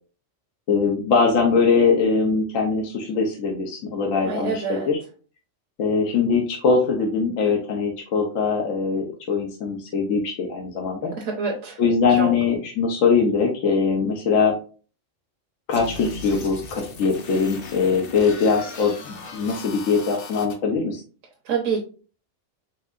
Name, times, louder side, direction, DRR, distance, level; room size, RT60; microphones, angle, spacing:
voice 1, 0.7-5.0 5.8-11.1 11.8-14.5 15.7-21.0, left 5 dB, 80° left, 1 dB, 1.2 m, -22 dB
voice 2, 4.2-4.9 11.2-11.8 12.1-12.3 21.5-21.8, right 5 dB, 75° right, 0 dB, 1.2 m, -26 dB
sound 1, 15.7-20.5, left 4 dB, 55° left, 0.8 m, -38 dB
4.6 x 3.6 x 2.4 m, 0.37 s
omnidirectional pair, 1.3 m